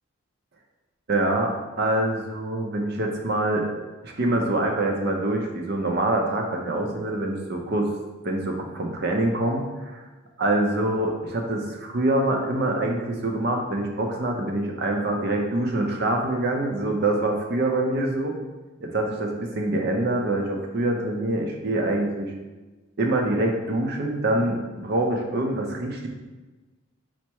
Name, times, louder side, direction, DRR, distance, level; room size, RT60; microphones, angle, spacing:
voice 1, 1.1-3.7 4.0-7.9 8.2-10.0 10.4-18.4 18.8-22.3 23.0-24.6 24.8-26.1, right 1 dB, 50° right, 2 dB, 0.5 m, -25 dB
4.3 x 2.1 x 4.5 m, 1.2 s
head